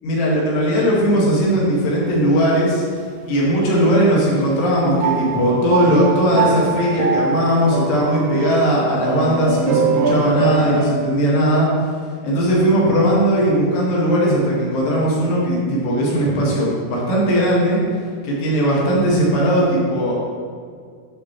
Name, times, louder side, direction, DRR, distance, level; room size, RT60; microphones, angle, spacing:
voice 1, 0.0-2.8 3.2-11.7 12.2-17.8 18.2-20.2, equal, 80° left, -5 dB, 4.2 m, -18 dB
sound 1, 1.9-2.7 3.4-4.0 5.0-10.9, right 5 dB, 90° right, 1.6 m, -23 dB
11.0 x 7.7 x 3.2 m, 2.1 s
omnidirectional pair, 4.8 m